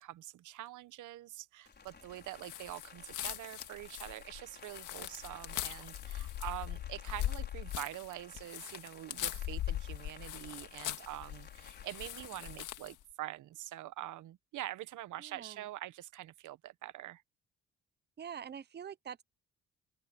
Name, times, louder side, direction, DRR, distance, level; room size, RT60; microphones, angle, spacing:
voice 1, 0.0-17.2, right 15 dB, 80° right, 1.0 m, -45 dB
Rain, 1.7-12.6, left 5 dB, 35° left, 5.6 m, -56 dB
sound 1, 2.4-13.0, left 13 dB, 85° left, 1.9 m, -41 dB
voice 2, 18.2-19.2, right 8 dB, 35° right, 0.8 m, -44 dB
open air
cardioid pair, 90°, 30 cm